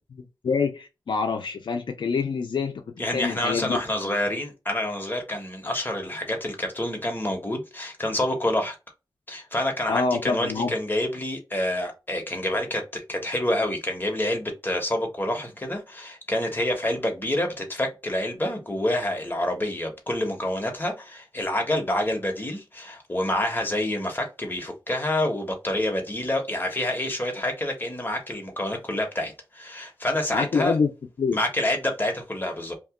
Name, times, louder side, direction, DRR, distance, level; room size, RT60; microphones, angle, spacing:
voice 1, 0.2-2.8 3.1-3.8 9.9-10.7 30.3-30.9 31.2-31.4, left 5 dB, 85° left, 0.5 m, -26 dB
voice 2, 3.0-8.8 9.3-30.7 31.3-32.7, left 1 dB, 25° left, 1.1 m, -27 dB
2.9 x 2.2 x 3.5 m
wide cardioid pair, 75°, 8 cm